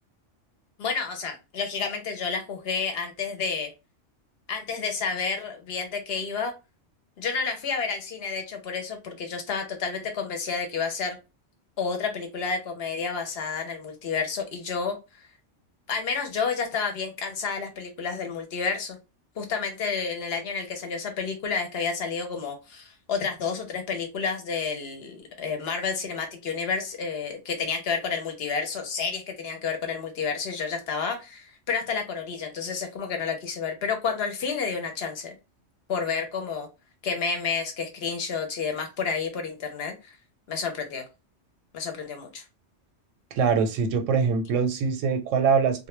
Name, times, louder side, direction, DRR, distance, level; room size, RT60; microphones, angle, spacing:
voice 1, 0.8-3.7 4.5-6.6 7.2-11.2 11.8-15.0 15.9-19.0 19.4-35.3 35.9-36.7 37.0-40.1 40.5-41.0 41.7-42.4, left 5 dB, 65° left, 4 dB, 0.8 m, -30 dB
voice 2, 43.4-45.9, right 6 dB, 85° right, 7 dB, 0.9 m, -23 dB
2.1 x 2.1 x 3.0 m, 0.27 s
omnidirectional pair, 1.3 m